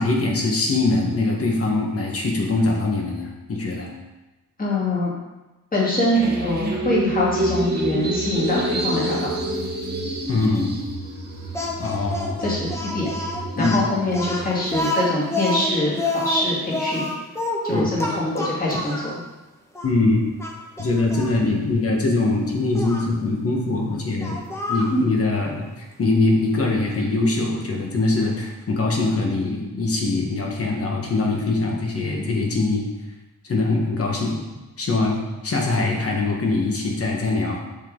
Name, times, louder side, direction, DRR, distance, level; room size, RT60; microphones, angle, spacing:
voice 1, 0.0-3.9 10.3-10.7 11.8-12.4 13.6-13.8 17.7-17.9 19.8-20.3 20.8-24.4 24.7-32.9 33.4-34.4 34.8-35.2 35.4-37.6, left 2 dB, 45° left, -1 dB, 1.7 m, -22 dB
voice 2, 4.6-5.1 5.7-9.4 12.4-13.1 13.6-17.1 17.6-19.2 24.9-25.0, left 1 dB, 25° left, -6 dB, 2.6 m, -24 dB
sound 1, 6.1-14.8, right 1 dB, 30° right, 1.3 m, -28 dB
Speech, 11.5-19.1 19.7-19.9 20.4-21.3 22.7-23.1 24.2-25.0, left 1 dB, 10° left, 1.1 m, -28 dB
7.2 x 7.1 x 4.0 m, 1.1 s
wide cardioid pair, 130°, 32 cm